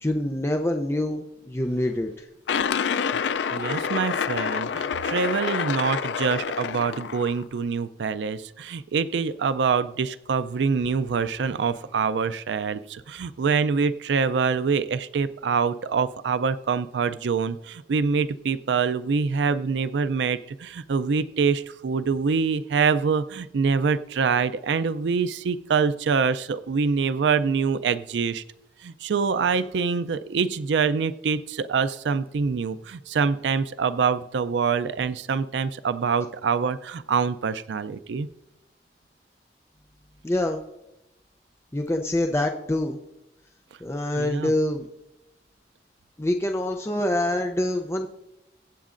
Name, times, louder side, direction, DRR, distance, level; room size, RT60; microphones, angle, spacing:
voice 1, 0.0-2.2 40.2-40.6 41.7-43.0 43.8-44.9 46.2-48.1, left 1 dB, 15° left, 4 dB, 0.5 m, -25 dB
sound 1, 2.5-7.4, left 6 dB, 85° left, 0.4 m, -27 dB
voice 2, 3.5-28.4 28.8-38.3 44.1-44.5, right 5 dB, 90° right, 13 dB, 0.4 m, -25 dB
22.0 x 8.2 x 2.5 m, 0.93 s
head